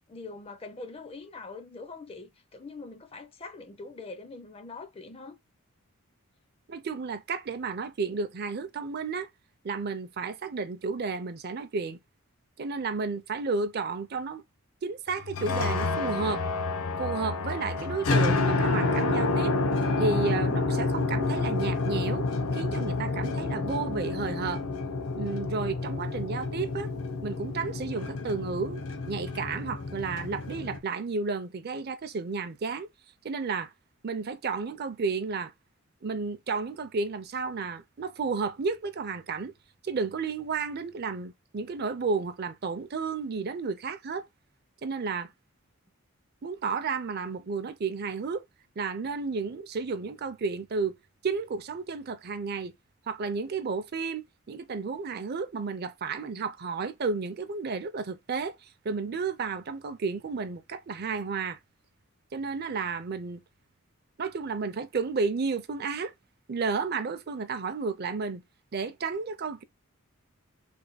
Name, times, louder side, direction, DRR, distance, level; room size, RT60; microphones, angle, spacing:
voice 1, 0.1-5.4, left 3 dB, 25° left, 0.4 m, -43 dB
voice 2, 6.7-9.3 9.6-12.0 12.6-14.4 14.8-16.5 17.0-19.5 20.0-22.3 22.5-24.6 25.2-26.9 27.2-32.9 33.2-33.7 34.0-35.5 36.0-39.5 39.8-44.3 44.8-45.3 46.4-48.4 48.8-51.0 51.2-52.7 53.1-61.6 62.3-63.4 64.2-66.1 66.5-68.4 68.7-69.6, right 4 dB, 45° right, 0.5 m, -32 dB
sound 1, 15.2-30.8, left 3 dB, 70° left, 0.6 m, -29 dB
3.4 x 2.1 x 4.0 m
head